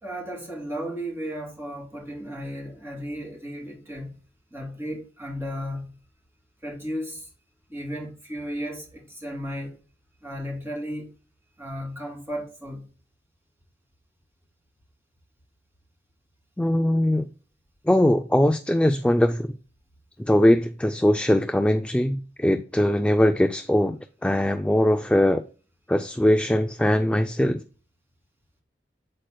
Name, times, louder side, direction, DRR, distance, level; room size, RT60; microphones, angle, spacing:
voice 1, 0.0-4.2 4.5-6.0 6.6-7.3 7.7-9.8 10.2-11.1 11.6-12.9, equal, 15° right, 2.9 m, -34 dB
voice 2, 16.6-17.3 17.9-19.5 20.2-25.4 25.9-27.6, left 1 dB, 5° left, 0.3 m, -21 dB
8.3 x 7.6 x 2.2 m
head